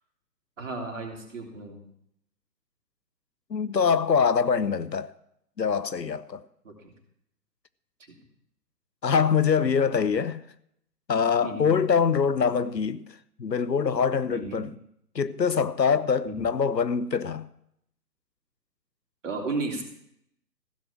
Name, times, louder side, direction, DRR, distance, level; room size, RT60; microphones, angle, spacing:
voice 1, 0.6-1.8 6.6-6.7 8.1-8.2 11.4-11.7 14.3-14.7 16.2-16.4 19.2-19.8, right 3 dB, 50° right, 3.2 m, -34 dB
voice 2, 3.5-5.1 5.6-6.4 9.0-10.4 11.1-13.0 13.4-14.7 15.1-17.5, left 6 dB, 85° left, 0.8 m, -24 dB
15.5 x 6.2 x 7.3 m
figure-of-eight pair, 145°, 49 cm